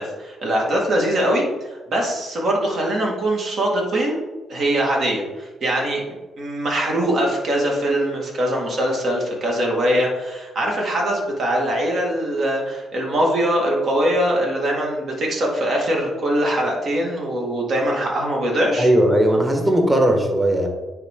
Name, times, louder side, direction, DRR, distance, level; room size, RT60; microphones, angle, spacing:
voice 1, 0.0-1.4 1.7-4.2 4.5-18.9, right 1 dB, 55° right, -1 dB, 2.0 m, -22 dB
voice 2, 18.8-20.7, right 1 dB, 15° right, 3 dB, 1.4 m, -17 dB
9.5 x 3.9 x 3.7 m, 1.2 s
cardioid pair, 90°, 0 cm